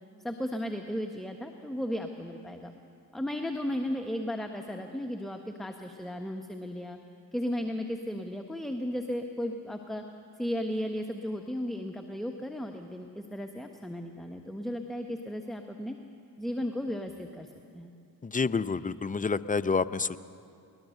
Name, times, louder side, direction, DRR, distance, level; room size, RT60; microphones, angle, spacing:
voice 1, 0.2-2.7 3.1-7.0 7.3-10.0 10.4-16.0 16.4-17.5 17.7-17.9, equal, ahead, 4 dB, 1.4 m, -35 dB
voice 2, 18.2-20.2, left 4 dB, 20° left, 14 dB, 0.7 m, -28 dB
21.0 x 20.0 x 6.6 m, 2.4 s
hypercardioid pair, 55°, 46 cm